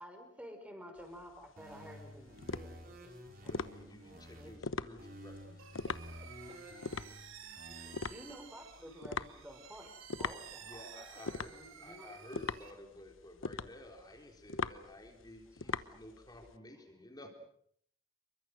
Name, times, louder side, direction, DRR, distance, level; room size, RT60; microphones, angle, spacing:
voice 1, 0.0-3.1 3.4-4.5 7.6-9.9 10.2-10.7 11.4-12.1 15.6-16.5, equal, 5° right, 5 dB, 5.6 m, -52 dB
sound 1, 1.0-16.5, left 4 dB, 80° left, 1.1 m, -42 dB
sound 2, 1.6-4.6 5.0-8.0, equal, 45° right, 4.9 m, -52 dB
voice 2, 3.4-5.9 10.6-11.5 11.8-17.4, left 1 dB, 20° left, 3 dB, 3.9 m, -53 dB
sound 3, 5.6-12.7, right 7 dB, 90° right, 3.5 m, -53 dB
voice 3, 5.9-6.6 9.7-10.0 10.9-11.4, right 2 dB, 30° right, 4 dB, 2.3 m, -61 dB
28.0 x 23.5 x 6.5 m, 0.65 s
head